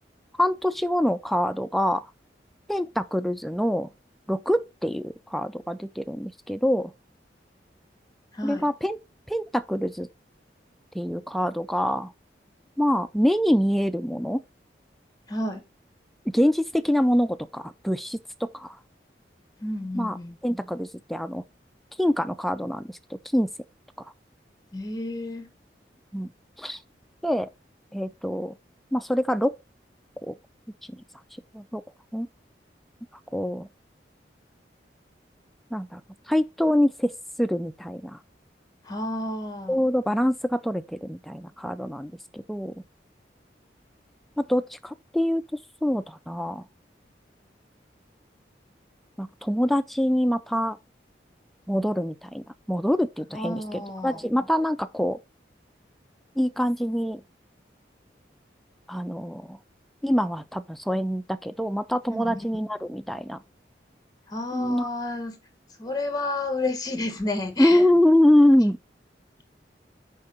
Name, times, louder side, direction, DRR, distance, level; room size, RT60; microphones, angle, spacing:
voice 1, 0.4-2.1 2.7-3.9 4.3-6.9 8.4-9.0 9.3-10.1 10.9-12.1 12.8-14.4 16.3-18.8 19.9-20.2 20.4-21.4 22.0-23.0 23.3-23.5 26.1-26.3 26.6-26.8 27.2-27.5 27.9-28.5 28.9-29.5 30.2-30.3 30.9-31.0 31.5-31.8 32.1-32.3 33.3-33.7 35.7-36.0 36.3-37.1 37.4-38.2 39.7-42.8 44.4-45.4 45.8-46.6 49.2-50.8 51.7-55.2 56.4-57.2 58.9-59.6 60.0-63.4 64.5-64.9 67.6-68.8, equal, ahead, 0.3 m, -25 dB
voice 2, 8.3-8.7 15.3-15.6 19.6-20.4 24.7-25.5 38.8-39.8 53.3-54.2 62.1-62.4 64.3-65.4 65.8-67.8, left 2 dB, 20° left, 1.3 m, -31 dB
6.2 x 4.7 x 4.3 m
head